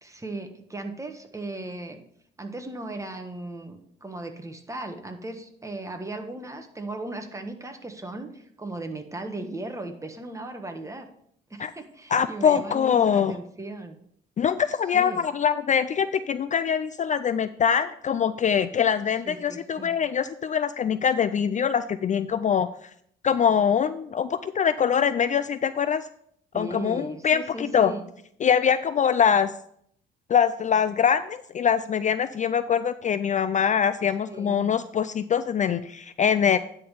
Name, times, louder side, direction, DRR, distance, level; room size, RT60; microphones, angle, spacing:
voice 1, 0.0-2.0 2.4-11.1 11.5-14.0 14.9-15.2 19.2-19.9 26.5-28.1 34.3-34.7, right 2 dB, 15° right, 5 dB, 1.3 m, -37 dB
voice 2, 12.1-13.4 14.4-22.9 23.2-26.1 26.5-27.9 28.4-29.5 30.3-36.6, left 7 dB, 40° left, 13 dB, 0.4 m, -23 dB
10.0 x 3.8 x 6.8 m, 0.68 s
cardioid pair, 90°, 20 cm